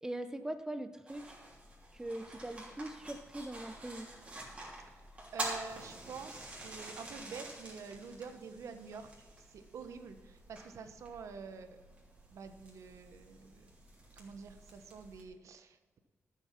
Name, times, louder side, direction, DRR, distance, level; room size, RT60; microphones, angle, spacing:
voice 1, 0.0-1.4 1.9-4.1, right 1 dB, 10° right, 9 dB, 0.7 m, -41 dB
sound 1, 1.1-15.2, right 2 dB, 25° right, 3.2 m, -48 dB
voice 2, 5.3-11.8 12.3-13.7 14.1-16.0, right 5 dB, 90° right, 8 dB, 1.1 m, -47 dB
13.0 x 7.9 x 5.9 m, 1.4 s
wide cardioid pair, 165°, 5 cm